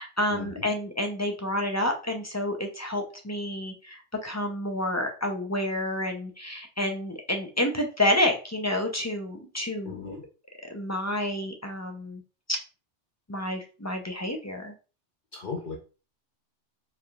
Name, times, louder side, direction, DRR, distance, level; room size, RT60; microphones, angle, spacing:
voice 1, 0.0-10.0 10.6-12.2 12.5-12.6 13.3-14.7, left 1 dB, 20° left, 3 dB, 0.5 m, -29 dB
voice 2, 9.8-10.2 15.3-15.8, left 5 dB, 50° left, -1 dB, 0.9 m, -36 dB
4.9 x 3.4 x 2.4 m, 0.34 s
omnidirectional pair, 1.2 m